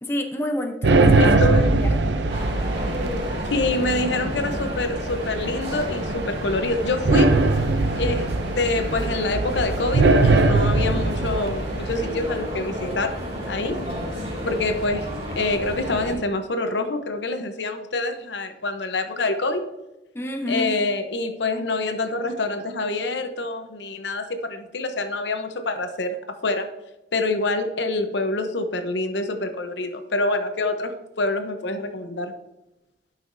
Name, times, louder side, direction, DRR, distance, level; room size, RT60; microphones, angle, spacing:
voice 1, 0.0-1.3 1.8-1.9 20.1-20.8, equal, 15° left, 3 dB, 0.7 m, -28 dB
sound 1, 0.8-12.2, right 2 dB, 70° right, 0.6 m, -22 dB
voice 2, 1.2-1.7 3.5-7.4 8.0-13.2 13.5-13.8 14.5-15.1 15.4-19.6 20.5-26.7 27.1-32.3, left 2 dB, 70° left, 7 dB, 0.8 m, -26 dB
sound 2, 2.3-16.1, equal, 35° right, 2.5 m, -32 dB
11.5 x 5.7 x 2.6 m, 0.95 s
head